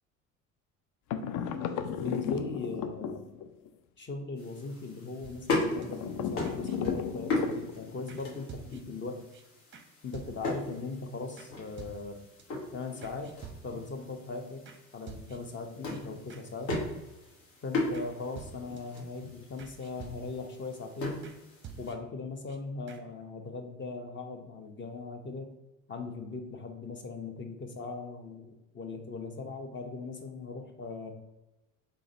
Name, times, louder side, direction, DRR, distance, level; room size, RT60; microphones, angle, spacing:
sound 1, 1.1-3.7 5.7-8.0, left 7 dB, 50° left, 0.5 m, -34 dB
voice 1, 2.0-3.2 4.0-9.3 10.0-12.2 12.7-13.4 13.6-14.6 14.9-16.8 17.6-21.3 21.8-25.5 25.9-31.1, left 3 dB, 25° left, 5 dB, 0.9 m, -39 dB
sound 2, 4.4-21.9, left 2 dB, 65° left, 1.6 m, -38 dB
sound 3, 5.2-5.9 6.4-7.4 8.1-8.2 8.5-9.0 9.3-9.4 9.7-9.9 10.1-10.7 11.4-11.5 11.8-12.4 13.0-14.0 14.7-14.8 15.1-15.6 15.9-16.0 16.3-16.4 16.7-17.2 17.9-18.1 18.4-19.0 19.6-20.5 21.2-21.4 21.6-22.2 22.5-22.6 22.9-23.0, right 6 dB, 25° right, 0.7 m, -48 dB
3.8 x 3.3 x 3.9 m, 1.0 s
hypercardioid pair, 60°, 42 cm